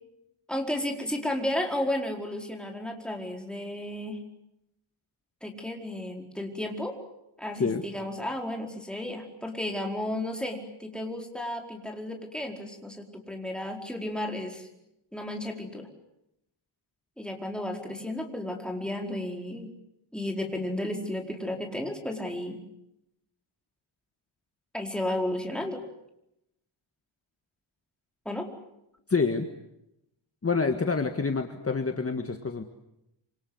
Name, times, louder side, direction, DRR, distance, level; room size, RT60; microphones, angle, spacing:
voice 1, 0.5-4.2 5.4-7.0 7.4-14.7 15.1-15.9 17.2-19.7 20.1-22.6 24.7-25.8 28.2-28.5, left 1 dB, ahead, 2 dB, 4.7 m, -33 dB
voice 2, 29.1-29.5 30.4-32.6, left 4 dB, 30° left, 6 dB, 1.8 m, -27 dB
27.0 x 26.5 x 8.0 m, 0.84 s
wide cardioid pair, 140°, 49 cm